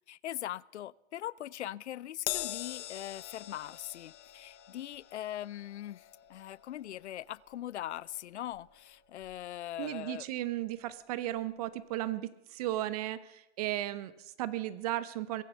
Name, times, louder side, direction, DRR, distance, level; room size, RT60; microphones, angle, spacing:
voice 1, 0.1-10.3, left 12 dB, 75° left, 0.5 m, -41 dB
Crash cymbal, 2.3-8.9 9.2-9.5 10.5-10.6, left 15 dB, 25° left, 1.0 m, -43 dB
voice 2, 9.8-15.4, right 14 dB, 35° right, 0.7 m, -35 dB
22.0 x 10.0 x 5.6 m
hypercardioid pair, 140°, 34 cm